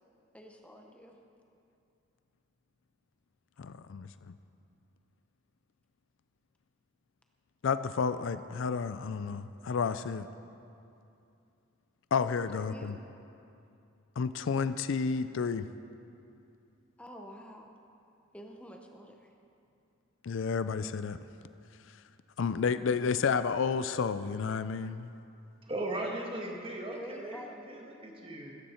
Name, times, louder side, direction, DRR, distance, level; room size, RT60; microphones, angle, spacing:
voice 1, 0.3-1.2 12.3-13.0 17.0-17.7 18.3-19.3 26.0-26.5 26.9-27.7, equal, 5° left, 2 dB, 0.9 m, -48 dB
voice 2, 3.6-4.3 7.6-10.3 12.1-12.9 14.2-15.7 20.2-21.2 22.4-25.1, left 5 dB, 65° left, 12 dB, 0.4 m, -31 dB
voice 3, 25.6-28.6, right 1 dB, 25° right, 0 dB, 1.6 m, -38 dB
15.5 x 14.0 x 4.4 m, 2.6 s
head